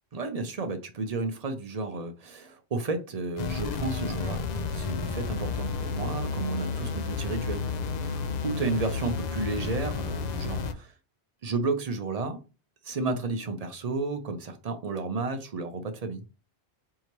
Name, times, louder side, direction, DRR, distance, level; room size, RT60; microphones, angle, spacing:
voice 1, 0.1-4.4 4.7-7.7 8.0-10.9 11.4-12.4 12.8-16.2, right 3 dB, 40° right, 0.6 m, -32 dB
sound 1, 3.4-10.7, left 4 dB, 55° left, 0.5 m, -31 dB
4.7 x 2.8 x 2.9 m
omnidirectional pair, 1.1 m